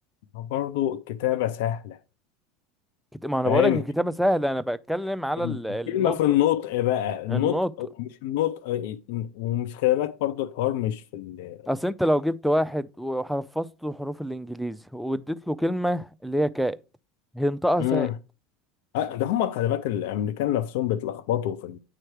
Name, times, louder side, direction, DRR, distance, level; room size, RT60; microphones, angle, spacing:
voice 1, 0.3-2.0 3.4-3.8 5.4-5.6 5.9-11.6 17.8-18.1 18.9-21.8, left 12 dB, 70° left, 0.5 m, -26 dB
voice 2, 3.2-6.2 7.3-7.7 11.7-16.8 17.3-18.1, equal, ahead, 0.4 m, -26 dB
8.6 x 3.3 x 4.6 m
hypercardioid pair, 85°, 0 cm